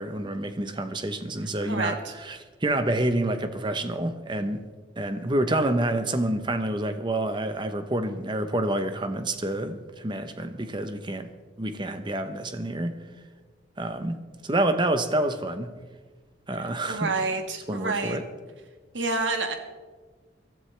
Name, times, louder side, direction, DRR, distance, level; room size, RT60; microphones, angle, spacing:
voice 1, 0.0-4.7 5.0-11.3 11.6-13.0 13.8-15.7 16.5-17.1 17.7-18.2, right 1 dB, 25° right, 0.9 m, -28 dB
voice 2, 1.6-2.1 16.9-18.2 18.9-19.5, right 3 dB, 80° right, 1.5 m, -28 dB
22.0 x 13.0 x 3.4 m
head